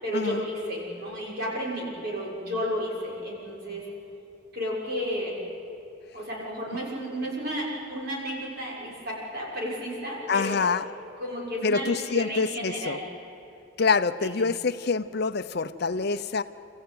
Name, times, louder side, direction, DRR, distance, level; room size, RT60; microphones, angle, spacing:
voice 1, 0.0-3.9 4.5-5.4 6.1-10.7 11.2-13.1 14.2-14.4, equal, 50° right, -4 dB, 6.5 m, -32 dB
voice 2, 10.3-10.8 11.6-13.0 13.8-16.4, left 4 dB, 50° left, 11 dB, 0.6 m, -26 dB
28.0 x 15.0 x 9.6 m, 2.8 s
head